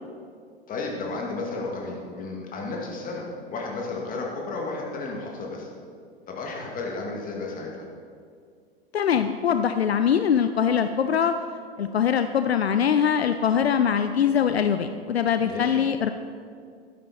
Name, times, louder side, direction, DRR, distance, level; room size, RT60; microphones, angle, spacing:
voice 1, 0.7-5.7 6.3-7.9 15.4-15.8, left 3 dB, 25° left, -1 dB, 2.4 m, -33 dB
voice 2, 8.9-11.4 11.8-16.1, left 8 dB, 75° left, 9 dB, 0.5 m, -22 dB
12.5 x 10.5 x 4.2 m, 2.2 s
figure-of-eight pair, 90°, 31 cm